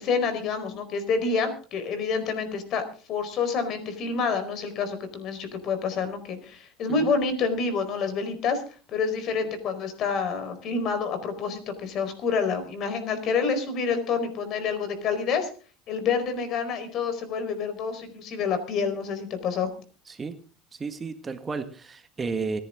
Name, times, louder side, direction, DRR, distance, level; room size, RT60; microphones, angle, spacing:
voice 1, 0.0-2.8 3.1-8.6 8.9-15.5 15.9-19.7, left 5 dB, 55° left, 10 dB, 4.6 m, -28 dB
voice 2, 20.8-22.6, right 4 dB, 25° right, 8 dB, 1.7 m, -32 dB
25.0 x 11.0 x 3.8 m, 0.37 s
supercardioid pair, 100°, 0 cm